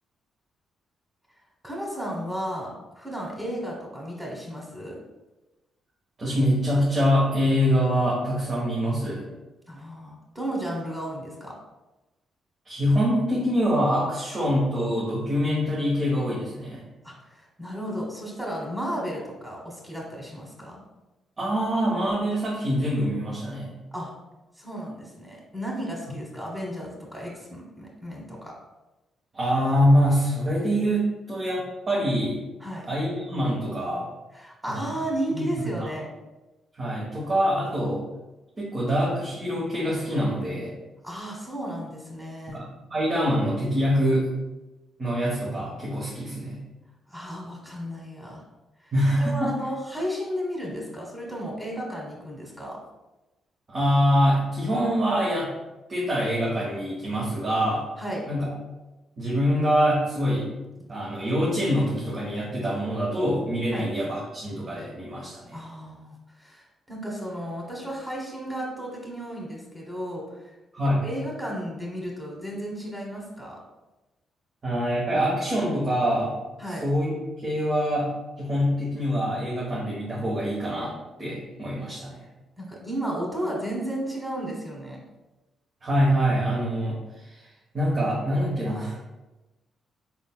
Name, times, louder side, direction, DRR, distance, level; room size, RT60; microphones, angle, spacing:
voice 1, 1.6-2.7 2.9-5.0 9.7-11.5 17.0-20.8 23.9-24.1 24.6-28.5 32.6-32.9 34.3-36.1 41.0-42.6 47.1-48.4 48.8-48.9 49.2-52.8 58.0-58.3 63.7-63.9 65.5-70.4 70.8-73.6 76.6-76.8 82.6-85.0, equal, 15° right, -2 dB, 1.5 m, -33 dB
voice 2, 6.2-9.2 12.6-16.8 21.4-23.7 29.3-32.4 32.9-34.1 34.6-34.9 35.3-35.9 36.8-38.0 38.6-40.7 42.5-44.3 45.0-46.6 48.9-49.5 53.7-55.5 55.9-57.8 58.3-58.5 59.2-60.5 60.9-65.6 70.7-71.1 74.6-76.3 76.7-77.1 77.4-80.9 81.2-82.2 85.8-87.5 87.7-89.0, equal, 45° right, -6 dB, 1.2 m, -25 dB
4.3 x 3.7 x 2.3 m, 1.1 s
supercardioid pair, 55°, 0 cm